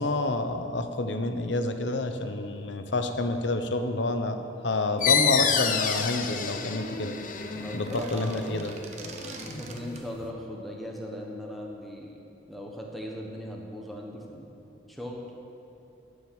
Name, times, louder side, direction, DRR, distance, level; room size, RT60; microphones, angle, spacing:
voice 1, 0.0-7.2 7.7-8.7, left 2 dB, 75° left, 7 dB, 0.9 m, -28 dB
sound 1, 5.0-10.3, left 7 dB, 45° left, 0.7 m, -29 dB
voice 2, 7.5-8.5 9.4-12.2 12.5-14.6 14.9-15.3, equal, ahead, -1 dB, 1.3 m, -39 dB
Toy accordeon Tube, 7.7-10.1, right 3 dB, 35° right, 1.0 m, -43 dB
12.0 x 6.5 x 8.7 m, 2.8 s
head